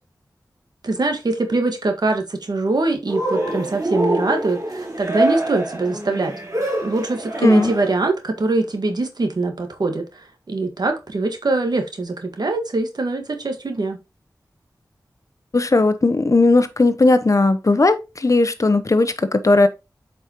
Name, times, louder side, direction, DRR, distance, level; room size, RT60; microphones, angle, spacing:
voice 1, 0.8-6.3 6.8-14.0, right 2 dB, 70° right, 1.6 m, -23 dB
Cheering, 3.1-8.0, right 1 dB, 45° right, 3.6 m, -25 dB
voice 2, 7.4-7.7 15.5-19.7, left 2 dB, 50° left, 1.0 m, -17 dB
8.1 x 5.3 x 3.0 m
wide cardioid pair, 55°, 7 cm